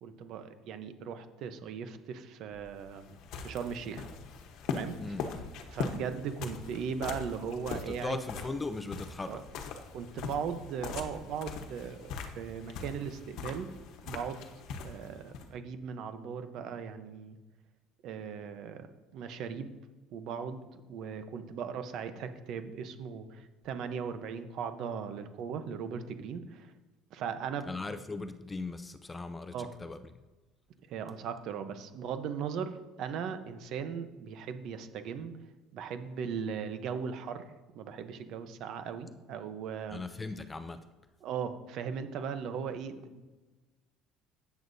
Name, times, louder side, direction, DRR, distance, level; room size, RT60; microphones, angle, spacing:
voice 1, 0.0-3.2 3.4-4.1 4.7-5.0 5.7-8.2 9.3-9.4 9.9-13.7 14.0-14.5 14.8-17.4 18.0-18.9 19.1-19.7 20.1-26.7 27.1-27.7 29.5-29.7 30.9-35.3 35.7-37.4 37.7-40.0 41.2-43.2, right 7 dB, 55° right, 9 dB, 0.9 m, -38 dB
sound 1, 2.5-15.5, left 5 dB, 60° left, 1.1 m, -41 dB
voice 2, 7.9-9.4 27.6-30.0 39.9-40.8, left 3 dB, 15° left, 10 dB, 0.5 m, -38 dB
14.5 x 9.2 x 2.7 m, 1.2 s
cardioid pair, 140°, 0 cm